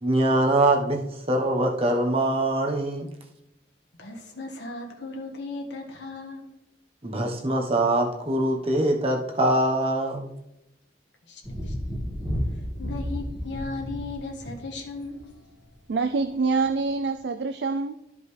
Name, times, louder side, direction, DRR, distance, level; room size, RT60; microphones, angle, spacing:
voice 1, 0.0-1.0 1.3-3.1 7.0-10.3, right 1 dB, 35° right, 2 dB, 1.1 m, -23 dB
voice 2, 4.0-6.5 11.3-11.7 12.5-15.5, left 3 dB, 75° left, 1 dB, 1.5 m, -37 dB
Thunder, 11.4-15.3 16.6-16.7, equal, 5° right, 1.5 m, -32 dB
voice 3, 15.9-17.9, right 4 dB, 70° right, 8 dB, 0.4 m, -25 dB
13.0 x 5.2 x 3.3 m, 0.86 s
head